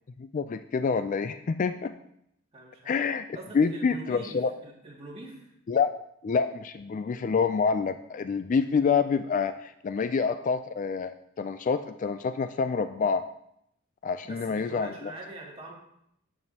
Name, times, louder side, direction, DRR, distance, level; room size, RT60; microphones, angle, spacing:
voice 1, 0.2-1.9 2.9-3.2 3.5-4.5 5.7-5.9 6.2-13.2 14.0-14.9, left 5 dB, 40° left, 10 dB, 0.3 m, -27 dB
voice 2, 2.5-3.0 3.3-4.3 4.6-5.5 14.2-15.7, right 2 dB, 30° right, -4 dB, 2.2 m, -43 dB
11.0 x 7.9 x 2.8 m, 0.75 s
head